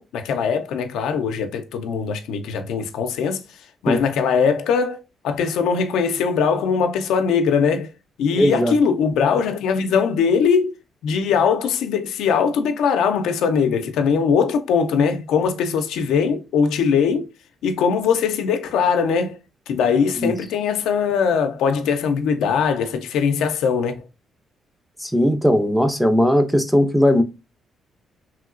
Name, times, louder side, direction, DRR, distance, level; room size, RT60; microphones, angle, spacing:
voice 1, 0.0-3.4 3.8-5.0 5.2-7.9 8.2-10.7 11.0-17.3 17.6-19.4 19.7-24.0, left 6 dB, 85° left, 0.4 m, -21 dB
voice 2, 8.3-8.7 20.2-20.3 25.0-27.2, equal, ahead, 0.5 m, -18 dB
3.0 x 2.8 x 2.4 m
cardioid pair, 90°, 0 cm